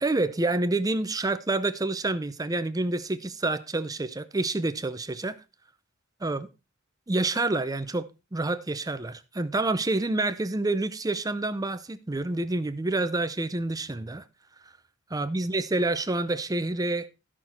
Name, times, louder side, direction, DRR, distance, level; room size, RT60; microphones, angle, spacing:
voice 1, 0.0-5.4 6.2-6.5 7.1-8.1 8.3-14.2 15.1-17.1, right 2 dB, 15° right, 0.6 m, -28 dB
13.0 x 6.1 x 4.3 m
head